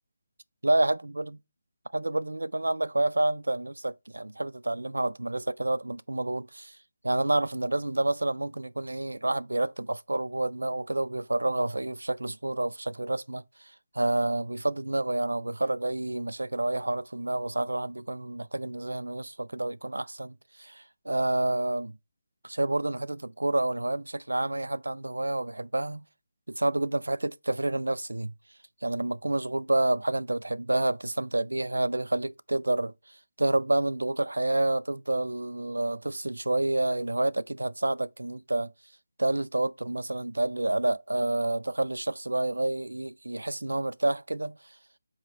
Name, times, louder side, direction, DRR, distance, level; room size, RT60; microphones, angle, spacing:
voice 1, 0.6-1.3 1.9-6.8 7.0-22.0 22.4-26.0 26.5-28.3 28.8-38.7 39.2-44.6, right 2 dB, 85° right, 0.4 m, -29 dB
7.8 x 3.3 x 4.0 m
figure-of-eight pair, 155°, 0 cm